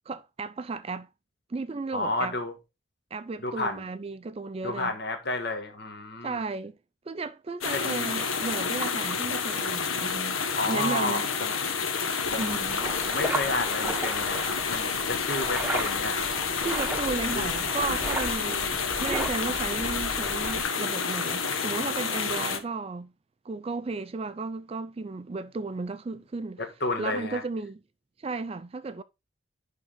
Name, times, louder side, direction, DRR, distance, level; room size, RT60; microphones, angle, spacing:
voice 1, 0.1-1.1 1.5-2.4 3.1-4.9 6.2-6.8 7.1-10.4 10.7-11.2 12.4-12.8 16.6-23.1 23.4-26.6 27.0-27.8 28.2-29.0, right 3 dB, 30° right, 0.3 m, -34 dB
voice 2, 1.9-2.5 3.4-3.8 4.6-6.4 7.7-8.2 10.6-11.5 12.3-12.6 13.0-16.3 17.3-17.5 18.4-18.5 26.6-27.4, left 2 dB, 50° left, 1.6 m, -31 dB
sound 1, 7.6-22.6, left 5 dB, 80° left, 1.2 m, -29 dB
sound 2, 12.2-20.6, right 1 dB, 10° right, 1.0 m, -35 dB
11.0 x 3.7 x 3.9 m
head